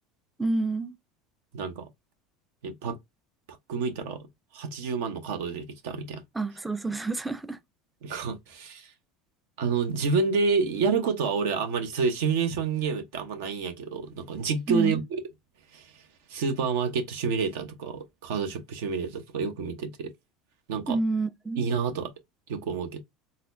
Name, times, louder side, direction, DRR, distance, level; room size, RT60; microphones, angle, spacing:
voice 1, 0.4-1.0 6.3-7.6 14.7-15.0 20.9-21.6, right 3 dB, 10° right, 0.3 m, -28 dB
voice 2, 1.5-1.9 2.6-3.0 3.7-4.3 4.5-6.2 8.0-8.9 9.6-15.2 15.7-16.0 16.3-20.1 20.7-21.0 21.6-22.1 22.5-23.0, right 5 dB, 80° right, 0.8 m, -29 dB
4.1 x 2.2 x 2.5 m
supercardioid pair, 125°, 0 cm